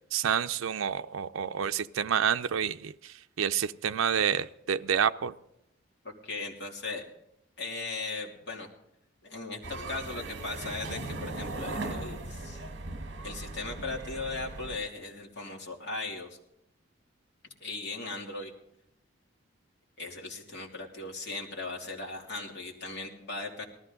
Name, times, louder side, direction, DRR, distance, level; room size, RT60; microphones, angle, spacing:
voice 1, 0.1-5.3, right 8 dB, 80° right, 0.5 m, -29 dB
voice 2, 6.0-7.1 7.6-8.7 9.2-12.6 13.2-16.4 17.6-18.5 20.0-23.6, left 3 dB, 60° left, 2.9 m, -38 dB
sound 1, 9.6-14.8, right 2 dB, 60° right, 1.5 m, -38 dB
19.0 x 13.5 x 3.9 m
head